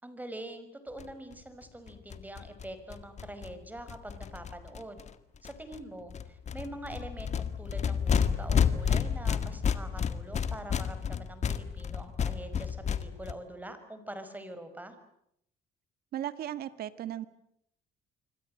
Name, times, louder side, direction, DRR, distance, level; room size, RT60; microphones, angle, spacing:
voice 1, 0.0-5.0 5.4-15.0, right 1 dB, 10° right, 9 dB, 5.4 m, -44 dB
sound 1, 1.0-1.1 1.3-1.4 1.6-1.7 1.9-5.1 5.4-5.8 6.1-13.3, left 7 dB, 40° left, 1.9 m, -31 dB
voice 2, 16.1-17.2, right 11 dB, 65° right, 13 dB, 1.9 m, -36 dB
27.0 x 24.5 x 7.8 m, 0.75 s
cardioid pair, 110°, 17 cm